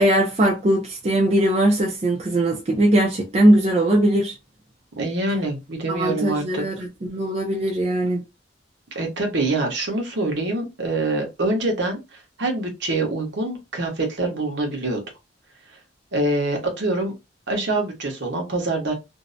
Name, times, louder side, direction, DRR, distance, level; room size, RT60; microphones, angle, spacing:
voice 1, 0.0-4.4 5.9-8.2, right 1 dB, 35° right, 0.4 m, -20 dB
voice 2, 5.0-6.6 8.9-15.0 16.1-17.1 17.5-18.9, right 2 dB, 65° right, 0.9 m, -25 dB
2.6 x 2.0 x 2.5 m
head